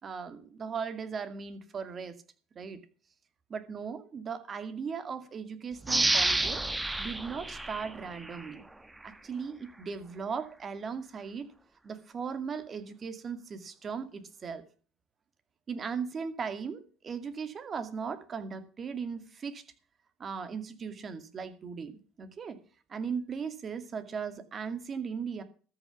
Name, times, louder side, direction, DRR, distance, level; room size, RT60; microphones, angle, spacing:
voice 1, 0.0-2.1 2.6-2.8 3.5-6.6 7.0-8.6 9.0-11.5 11.8-14.6 15.7-19.6 20.2-22.6 22.9-25.4, right 6 dB, 40° right, 2.2 m, -38 dB
sound 1, 5.8-8.5 9.0-9.1, right 2 dB, 10° right, 1.4 m, -30 dB
13.5 x 6.8 x 7.2 m
supercardioid pair, 95°, 0 cm